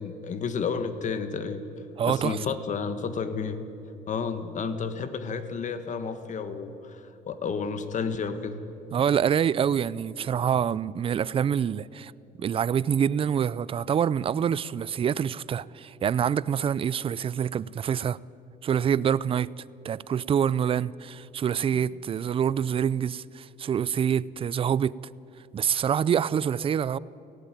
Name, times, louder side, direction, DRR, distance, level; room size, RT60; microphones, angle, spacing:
voice 1, 0.0-1.6 2.1-3.6 4.1-8.6 10.2-10.3, left 5 dB, 45° left, 1.5 m, -31 dB
voice 2, 2.0-2.4 8.9-12.1 12.4-18.2 18.6-19.5 19.8-25.0 25.5-27.0, right 8 dB, 35° right, 0.4 m, -26 dB
17.5 x 16.5 x 9.1 m
cardioid pair, 110°, 17 cm